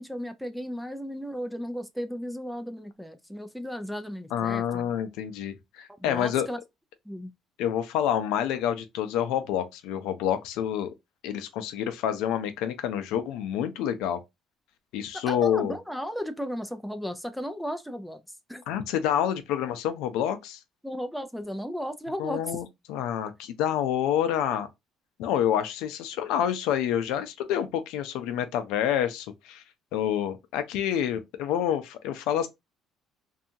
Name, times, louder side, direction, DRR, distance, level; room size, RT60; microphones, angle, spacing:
voice 1, 0.0-4.9 6.0-6.6 7.1-7.3 15.1-18.2 18.5-18.6 20.8-22.6, equal, ahead, 0.4 m, -35 dB
voice 2, 4.3-6.5 7.6-10.9 11.2-14.2 14.9-15.7 18.7-20.6 22.2-24.7 25.2-29.6 29.9-32.5, left 10 dB, 85° left, 0.5 m, -28 dB
2.7 x 2.3 x 2.6 m
cardioid pair, 120°, 0 cm